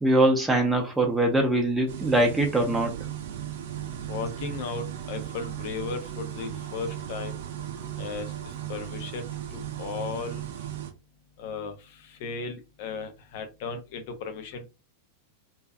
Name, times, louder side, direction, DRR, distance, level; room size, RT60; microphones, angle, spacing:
voice 1, 0.0-2.9, right 1 dB, 5° right, 0.6 m, -22 dB
sound 1, 1.9-10.9, right 11 dB, 55° right, 0.5 m, -36 dB
voice 2, 4.1-7.3 8.0-8.3 8.7-10.4 11.4-11.7 12.0-14.7, left 5 dB, 50° left, 0.5 m, -35 dB
2.6 x 2.2 x 2.3 m
figure-of-eight pair, 90°, 0 cm